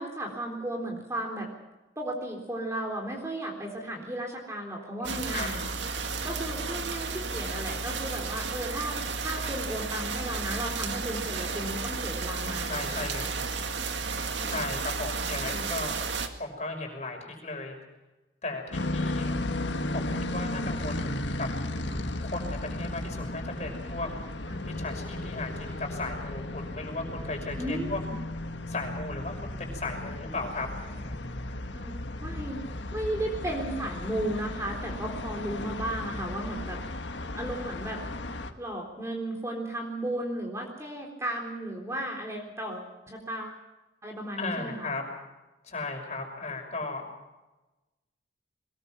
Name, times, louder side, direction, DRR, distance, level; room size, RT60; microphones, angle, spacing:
voice 1, 0.0-1.5 2.0-5.7 6.2-13.1 14.4-14.8 15.2-15.7 24.5-24.6 27.6-28.2 31.7-31.9 32.2-32.6 32.9-36.8 37.4-38.0 38.6-43.6 44.0-44.9, right 1 dB, 15° right, 1 dB, 3.7 m, -35 dB
voice 2, 5.0-5.5 12.4-13.4 14.5-16.1 16.4-17.7 18.4-19.3 19.9-21.5 22.2-24.1 24.7-28.0 28.7-31.2 44.4-45.0 45.6-47.1, left 2 dB, 40° left, 3 dB, 5.9 m, -36 dB
sound 1, 5.0-16.3, right 4 dB, 80° right, 2.1 m, -33 dB
sound 2, 18.7-38.5, left 1 dB, 80° left, 1.7 m, -35 dB
22.5 x 21.0 x 6.0 m, 1.1 s
head